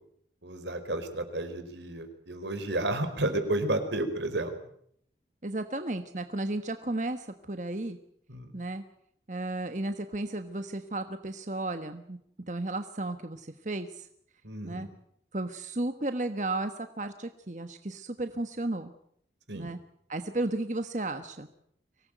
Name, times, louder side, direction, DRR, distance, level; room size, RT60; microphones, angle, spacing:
voice 1, 0.4-4.5 8.3-8.5 14.4-14.9 19.5-19.7, right 2 dB, 85° right, 8 dB, 4.6 m, -32 dB
voice 2, 5.4-8.0 8.5-8.8 9.3-12.2 12.5-14.1 14.6-14.9 15.3-18.9 19.5-19.8 20.1-21.5, right 2 dB, 45° right, 8 dB, 1.3 m, -34 dB
25.0 x 18.5 x 9.2 m, 0.68 s
head